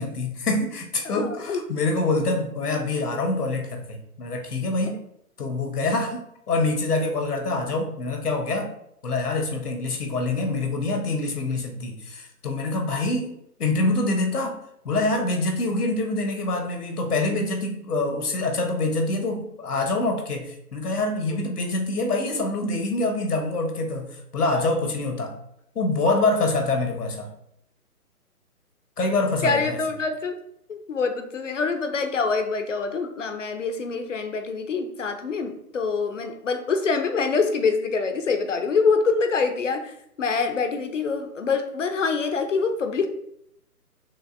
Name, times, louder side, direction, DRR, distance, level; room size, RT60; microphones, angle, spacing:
voice 1, 0.0-5.0 5.4-8.7 9.0-14.6 14.8-25.3 25.7-27.3 29.0-29.8, left 2 dB, 75° left, 4 dB, 1.1 m, -25 dB
voice 2, 1.0-1.6 29.4-30.3 30.7-39.9 40.2-43.1, left 4 dB, 55° left, 7 dB, 0.6 m, -25 dB
6.3 x 2.5 x 2.5 m, 0.74 s
figure-of-eight pair, 145°, 47 cm